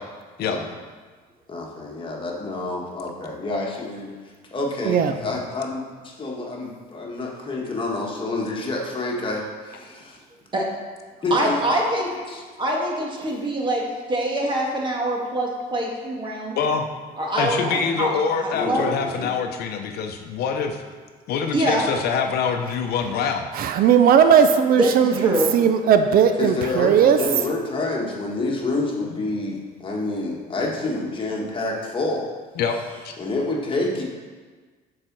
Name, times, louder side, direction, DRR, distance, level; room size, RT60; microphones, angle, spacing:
voice 1, 1.5-4.1 4.5-10.2 11.2-11.6 12.3-12.4 18.5-19.3 26.4-32.3 33.2-34.0, left 2 dB, 30° left, -2 dB, 1.5 m, -28 dB
voice 2, 11.3-12.1 12.6-16.6 17.2-18.1 18.4-18.9 21.5-21.8 24.8-25.5, right 1 dB, 30° right, -1 dB, 1.5 m, -24 dB
voice 3, 16.6-16.9 17.4-20.8 21.3-23.5 29.1-29.2 32.6-32.8 33.0-33.1, left 6 dB, 70° left, 5 dB, 0.7 m, -25 dB
voice 4, 23.5-25.1 25.5-27.2, right 8 dB, 60° right, 8 dB, 0.5 m, -17 dB
6.6 x 4.3 x 6.0 m, 1.4 s
cardioid pair, 110°, 17 cm